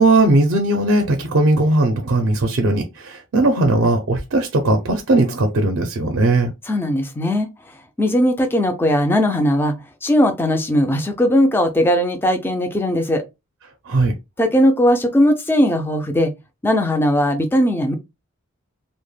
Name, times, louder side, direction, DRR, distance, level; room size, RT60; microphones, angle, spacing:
voice 1, 0.0-6.5 13.9-14.1, right 2 dB, 55° right, 0.4 m, -18 dB
voice 2, 6.7-7.5 8.0-9.7 10.0-13.2 14.4-16.3 16.6-17.9, equal, 10° left, 0.3 m, -18 dB
2.1 x 2.1 x 3.1 m
head